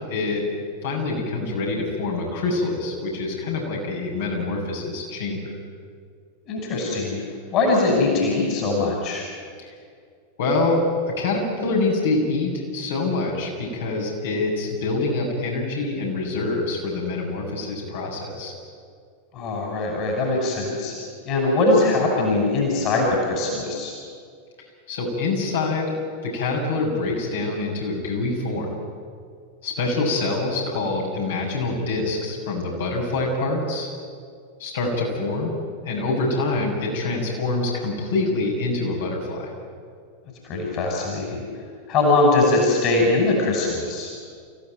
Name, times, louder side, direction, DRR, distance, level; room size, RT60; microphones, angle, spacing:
voice 1, 0.1-0.5 0.8-5.5 10.4-18.5 24.9-26.0 26.2-28.7 29.6-33.9 34.6-35.5 35.8-39.5, left 3 dB, 60° left, -2 dB, 7.1 m, -25 dB
voice 2, 6.5-7.2 7.5-9.2 19.3-20.9 21.2-23.9 40.4-41.4 41.9-44.1, left 2 dB, 35° left, 0 dB, 6.1 m, -21 dB
30.0 x 16.0 x 9.3 m, 2.2 s
figure-of-eight pair, 90°, 0 cm